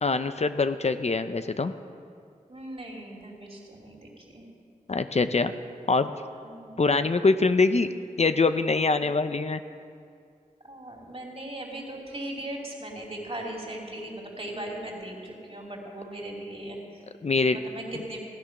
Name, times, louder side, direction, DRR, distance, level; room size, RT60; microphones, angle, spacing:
voice 1, 0.0-1.7 4.9-5.5 5.9-6.1 6.8-7.9 8.2-9.6 17.2-17.6, left 3 dB, 50° left, 10 dB, 0.6 m, -24 dB
voice 2, 2.5-4.4 6.4-6.8 8.9-9.0 10.6-17.0 17.5-18.2, right 1 dB, 45° right, -1 dB, 2.9 m, -38 dB
15.5 x 9.9 x 5.9 m, 2.3 s
wide cardioid pair, 50°, 14 cm